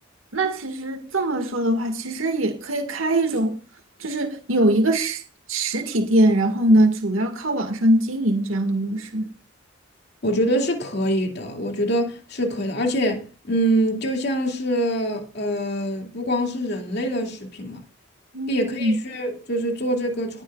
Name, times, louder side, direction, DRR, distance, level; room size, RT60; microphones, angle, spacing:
voice 1, 0.3-3.6 4.0-5.2 5.5-9.3 18.3-19.0, right 1 dB, 75° right, 2.0 m, -22 dB
voice 2, 10.2-17.8 18.5-20.4, equal, 55° left, 2.5 m, -25 dB
19.0 x 10.5 x 2.5 m
head